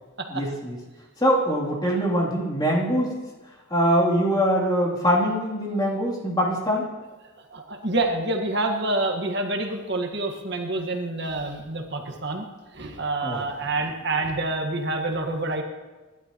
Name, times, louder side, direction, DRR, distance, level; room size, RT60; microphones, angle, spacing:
voice 1, 0.3-0.8 1.2-3.2 3.7-6.9 13.2-13.4, equal, 20° left, -3 dB, 3.0 m, -23 dB
voice 2, 7.5-12.4 12.7-15.6, right 2 dB, 55° right, 2 dB, 1.5 m, -27 dB
27.0 x 12.0 x 3.0 m, 1.2 s
head